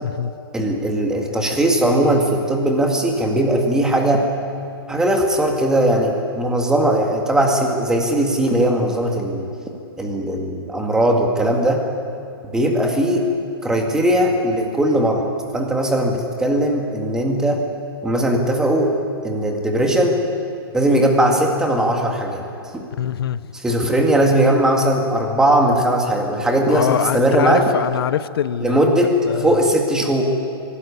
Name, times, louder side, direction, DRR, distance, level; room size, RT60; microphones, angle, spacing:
voice 1, 0.5-4.3 4.9-9.5 10.0-11.8 12.5-13.2 13.6-15.2 15.5-17.6 18.0-18.9 19.2-20.2 20.7-22.5 22.7-22.8 23.5-27.7 28.6-29.1 29.4-30.2, right 1 dB, 5° right, 1.9 m, -19 dB
voice 2, 23.0-23.5 26.7-28.8 29.3-29.6, left 10 dB, 70° left, 0.7 m, -23 dB
23.5 x 12.5 x 9.6 m
hypercardioid pair, 165°, 13 cm